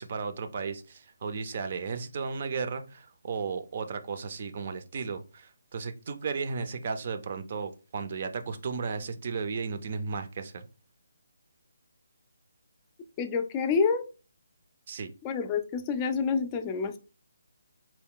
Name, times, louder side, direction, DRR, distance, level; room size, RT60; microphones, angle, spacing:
voice 1, 0.0-10.6 14.9-15.1, right 5 dB, 40° right, 0.5 m, -34 dB
voice 2, 13.2-14.1 15.2-17.0, left 5 dB, 20° left, 0.4 m, -28 dB
4.6 x 2.2 x 3.6 m
figure-of-eight pair, 155°, 0 cm